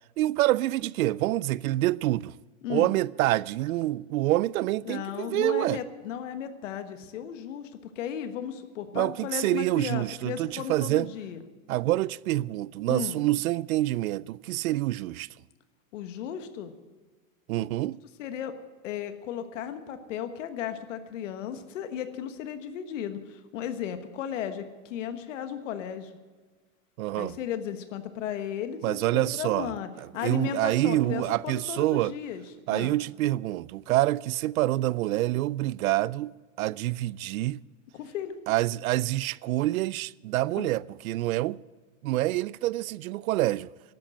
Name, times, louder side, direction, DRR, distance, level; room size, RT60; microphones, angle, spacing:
voice 1, 0.2-2.3 2.7-5.8 8.9-11.1 11.7-15.3 17.5-18.0 27.0-27.4 28.8-29.7 30.2-32.1 32.7-37.6 38.5-41.6 42.0-43.7, right 16 dB, 85° right, 0.5 m, -27 dB
voice 2, 2.6-2.9 4.8-7.7 7.9-11.4 12.9-13.2 15.9-16.7 18.2-18.5 18.8-26.1 27.2-29.9 30.1-32.4 32.7-32.9 37.9-38.4 40.6-40.7, left 9 dB, 65° left, 1.4 m, -35 dB
12.5 x 9.2 x 8.9 m
supercardioid pair, 165°, 41 cm